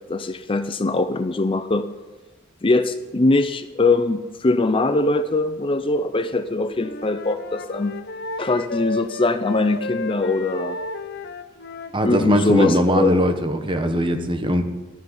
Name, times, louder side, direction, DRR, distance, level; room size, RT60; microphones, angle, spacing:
voice 1, 0.1-1.9 2.6-8.0 8.4-10.8 12.0-13.2, left 2 dB, 25° left, 10 dB, 0.5 m, -21 dB
Wind instrument woodwind instrument, 6.7-12.4, left 2 dB, 50° left, 0.9 m, -33 dB
voice 2, 11.9-14.6, equal, 25° right, 7 dB, 1.1 m, -20 dB
12.5 x 7.4 x 9.6 m, 1.2 s
head